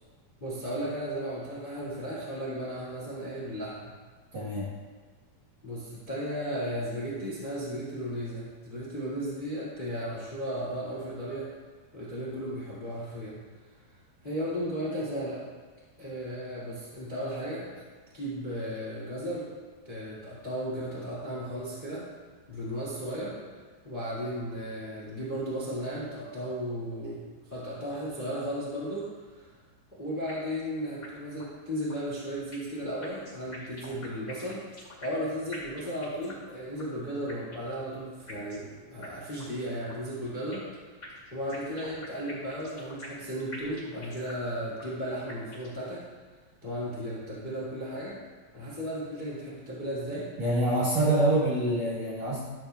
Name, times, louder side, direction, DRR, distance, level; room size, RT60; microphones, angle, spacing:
voice 1, 0.4-3.9 5.6-11.5 11.9-13.4 14.2-15.4 16.0-17.8 18.1-19.5 19.8-22.1 22.5-23.4 23.8-27.2 27.5-29.5 30.0-34.6 35.0-40.7 41.3-46.0 46.6-48.2 48.5-50.3 51.1-51.2, equal, 75° left, -8 dB, 0.4 m, -35 dB
voice 2, 4.3-4.7 50.4-52.4, right 1 dB, 60° right, -8 dB, 2.1 m, -26 dB
sound 1, 30.3-30.7 31.0-31.1 31.4-31.5 31.9-32.7 33.0-35.2 35.5-36.5 36.8-36.9 37.3-37.8 38.3-38.7 39.0-39.1 39.4-39.5 39.9-40.7 41.0-43.2 43.5-44.5 44.8-44.9 45.3-45.8, left 1 dB, 30° left, 2.0 m, -45 dB
13.0 x 7.4 x 2.2 m, 1.4 s
omnidirectional pair, 4.5 m